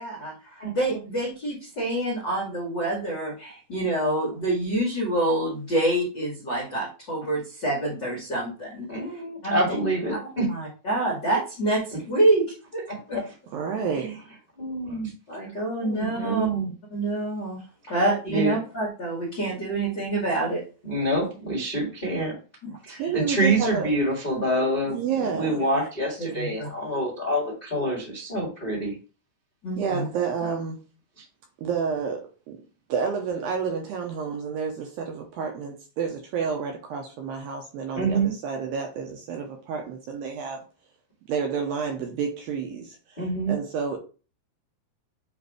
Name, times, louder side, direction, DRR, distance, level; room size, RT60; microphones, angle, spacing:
voice 1, 0.0-8.9 9.4-9.6 10.4-13.2 15.3-16.5 16.9-17.6 17.9-20.6 22.6-23.1 26.2-26.7 29.6-30.1, right 2 dB, 75° left, -2 dB, 1.0 m, -27 dB
voice 2, 8.9-10.5 12.9-13.2 14.0-14.1 14.6-15.4 15.8-16.7 18.3-18.6 20.8-22.3 22.8-28.9 31.2-31.3 37.9-38.3 43.2-43.6, right 1 dB, 50° left, -2 dB, 0.6 m, -27 dB
voice 3, 13.5-14.1 23.0-23.9 24.9-25.7 29.8-30.8 31.6-32.6 32.9-40.6 41.3-44.0, right 6 dB, 80° right, 2 dB, 2.2 m, -30 dB
7.8 x 2.6 x 4.7 m, 0.35 s
omnidirectional pair, 4.9 m